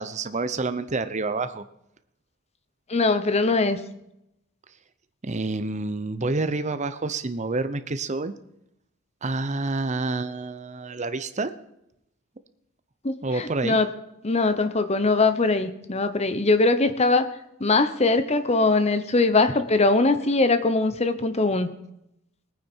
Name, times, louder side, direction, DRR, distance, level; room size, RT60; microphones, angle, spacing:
voice 1, 0.0-1.6 5.2-8.3 9.2-11.5 13.2-13.8, right 3 dB, 35° right, 11 dB, 0.7 m, -28 dB
voice 2, 2.9-3.8 13.0-13.9 14.2-17.3 17.6-21.7, left 3 dB, 30° left, 10 dB, 0.9 m, -21 dB
20.5 x 9.3 x 4.5 m, 0.82 s
head